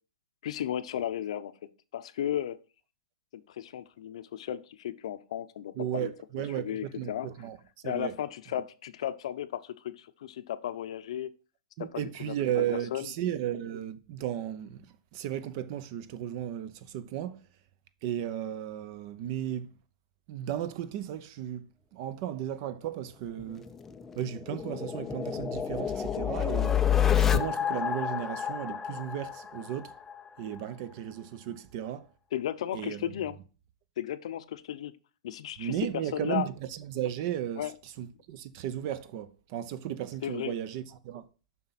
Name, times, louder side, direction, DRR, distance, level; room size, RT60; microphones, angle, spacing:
voice 1, 0.4-1.5 1.9-2.6 3.3-6.1 6.6-7.3 7.8-11.3 11.8-12.6 12.9-13.1 32.3-33.4 34.0-34.9 35.2-35.8 36.1-36.5 37.6-37.7 40.2-40.5, left 11 dB, 65° left, 0.7 m, -35 dB
voice 2, 5.8-7.6 7.8-8.1 11.8-14.9 15.1-17.4 18.0-19.7 20.3-21.7 21.9-23.7 24.1-26.8 27.1-29.9 30.4-32.1 32.7-33.1 35.6-41.3, right 11 dB, 40° right, 0.7 m, -35 dB
sound 1, 23.4-30.2, left 9 dB, 10° left, 0.4 m, -29 dB
7.3 x 5.7 x 4.1 m
hypercardioid pair, 150°, 4 cm